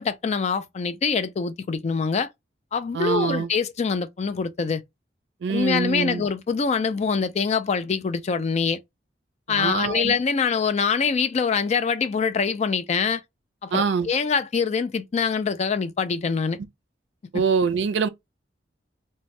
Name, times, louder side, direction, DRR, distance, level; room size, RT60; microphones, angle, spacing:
voice 1, 0.0-2.3 2.7-4.8 5.5-8.8 9.5-13.2 13.6-16.6 17.3-17.4, left 5 dB, 40° left, 0.3 m, -24 dB
voice 2, 2.9-3.5 5.4-6.2 9.5-10.1 13.7-14.1 17.3-18.1, right 5 dB, 75° right, 0.4 m, -24 dB
2.6 x 2.1 x 3.1 m
head